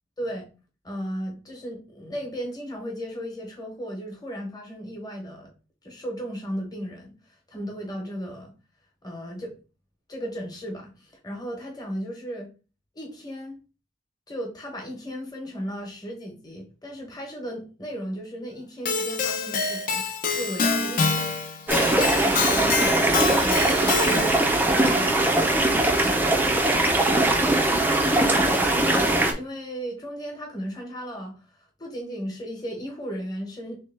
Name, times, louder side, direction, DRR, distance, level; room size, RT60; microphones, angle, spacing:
voice 1, 0.2-0.5 0.8-5.5 5.8-8.5 9.0-9.5 10.1-12.5 12.9-13.6 14.3-20.0 20.3-21.2 21.6-24.4 24.6-25.3 26.0-26.6 28.0-33.8, equal, 20° left, 1.0 m, -35 dB
Keyboard (musical), 18.9-24.5, left 4 dB, 50° left, 0.6 m, -26 dB
sound 1, 21.7-29.3, right 2 dB, 10° right, 0.4 m, -21 dB
3.2 x 3.2 x 3.3 m
head